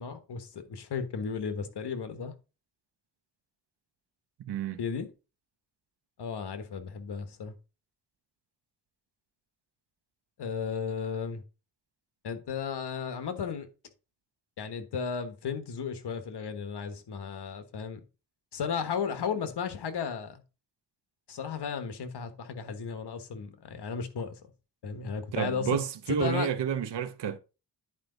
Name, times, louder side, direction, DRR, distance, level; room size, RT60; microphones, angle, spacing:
voice 1, 0.0-2.3 4.8-5.1 6.2-7.6 10.4-11.4 12.2-13.7 14.6-18.0 18.5-20.4 21.3-24.4 24.8-25.8 26.1-26.5, left 6 dB, 75° left, 1.3 m, -34 dB
voice 2, 4.4-4.8 25.3-27.4, right 8 dB, 85° right, 0.9 m, -30 dB
10.5 x 4.7 x 3.8 m
wide cardioid pair, 130°, 40 cm